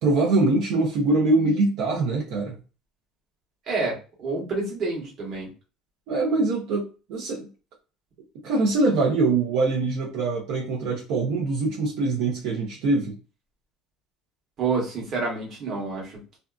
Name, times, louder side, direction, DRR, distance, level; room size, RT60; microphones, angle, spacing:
voice 1, 0.0-2.6 6.1-7.5 8.4-13.2, right 3 dB, 65° right, -3 dB, 0.7 m, -23 dB
voice 2, 3.7-5.5 14.6-16.4, right 3 dB, 35° right, -3 dB, 1.1 m, -28 dB
2.6 x 2.4 x 2.3 m, 0.33 s
cardioid pair, 165°, 0 cm